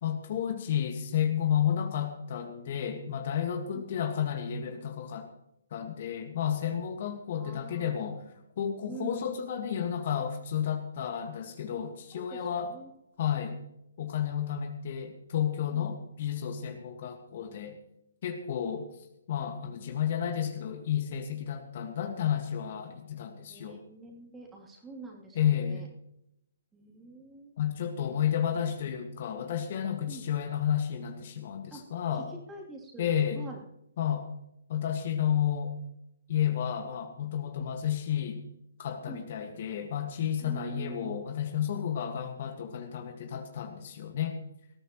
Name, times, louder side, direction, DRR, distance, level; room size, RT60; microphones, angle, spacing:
voice 1, 0.0-5.3 5.7-8.2 8.6-12.7 13.2-13.6 14.0-17.8 18.2-18.9 19.3-23.8 25.4-25.9 27.6-32.3 33.0-33.4 34.0-34.3 34.7-35.7 36.3-38.4 38.8-44.4, left 9 dB, 45° left, 5 dB, 1.8 m, -31 dB
voice 2, 7.3-8.3 8.9-9.4 12.1-12.9 15.7-16.0 16.7-16.8 23.5-25.9 26.7-27.6 30.1-30.3 31.7-31.9 32.1-33.6 37.6-37.7 39.1-39.5 40.4-41.1, right 3 dB, 10° right, -2 dB, 3.0 m, -46 dB
19.5 x 14.0 x 3.1 m, 0.81 s
figure-of-eight pair, 135°, 0 cm